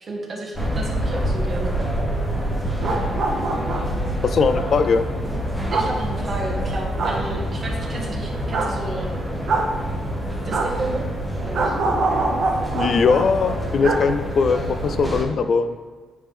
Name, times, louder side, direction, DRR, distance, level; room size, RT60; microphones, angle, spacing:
voice 1, 0.1-1.8 2.8-3.0 5.7-9.1 10.4-11.1 11.3-11.8, right 2 dB, 40° right, -2 dB, 1.5 m, -32 dB
sound 1, 0.5-15.2, equal, 5° left, 1.3 m, -27 dB
sound 2, 2.6-4.0 5.7-5.9 7.0-7.2 8.5-8.7 9.5-9.7 10.5-10.7 11.5-13.2 13.8-14.0 14.3-14.4, right 3 dB, 60° right, 1.0 m, -24 dB
voice 2, 4.2-5.1 12.7-15.8, left 5 dB, 55° left, 10 dB, 0.3 m, -20 dB
8.9 x 3.6 x 3.4 m, 1.5 s
cardioid pair, 90°, 0 cm